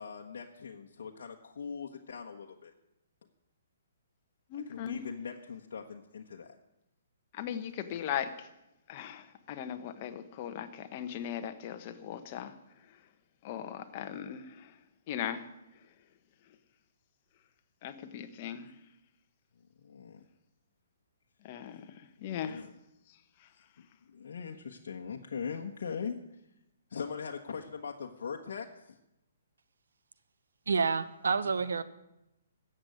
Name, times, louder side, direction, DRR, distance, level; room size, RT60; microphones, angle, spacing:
voice 1, 0.0-2.7 4.7-6.6 19.8-20.3 22.2-22.7 23.5-26.4 26.9-29.0, left 6 dB, 70° left, 1 dB, 1.2 m, -41 dB
voice 2, 4.5-5.0 7.3-8.5 8.9-12.5 13.4-14.7 15.1-15.5 17.8-18.7 21.4-22.6, left 9 dB, 35° left, 8 dB, 1.3 m, -38 dB
voice 3, 30.7-31.8, right 5 dB, 90° right, 14 dB, 1.0 m, -28 dB
14.0 x 8.0 x 9.4 m, 0.90 s
hypercardioid pair, 155°, 0 cm